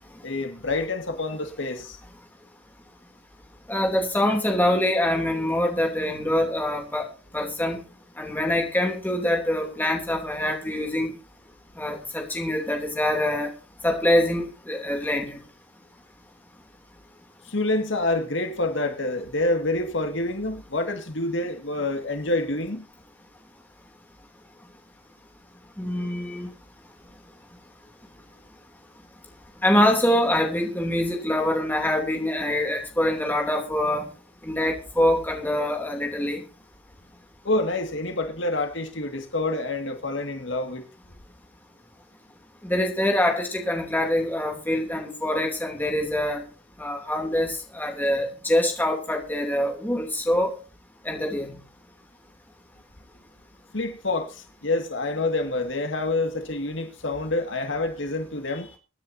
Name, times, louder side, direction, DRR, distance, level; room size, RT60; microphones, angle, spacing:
voice 1, 0.2-2.0 17.5-22.9 37.4-40.8 53.7-58.8, left 2 dB, 70° left, 2.1 m, -27 dB
voice 2, 3.7-7.1 7.3-7.8 8.2-11.1 11.8-13.5 13.8-15.4 25.8-26.5 29.6-34.1 34.4-36.4 42.6-46.4 46.8-50.5 51.0-51.6, left 1 dB, 10° left, 2.9 m, -24 dB
25.0 x 10.0 x 2.8 m
head